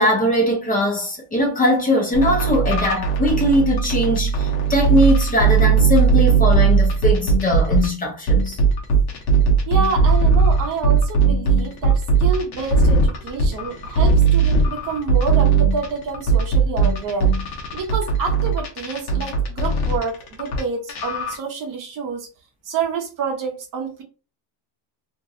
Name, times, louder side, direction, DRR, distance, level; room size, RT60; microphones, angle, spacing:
voice 1, 0.0-8.6, left 1 dB, 20° left, 0.8 m, -20 dB
sound 1, 2.1-7.9 8.3-20.6 20.9-21.4, right 5 dB, 55° left, 1.0 m, -18 dB
voice 2, 9.7-17.3 17.7-22.3 22.7-24.0, right 5 dB, 45° right, 0.8 m, -28 dB
2.9 x 2.7 x 2.6 m
cardioid pair, 155°, 45 cm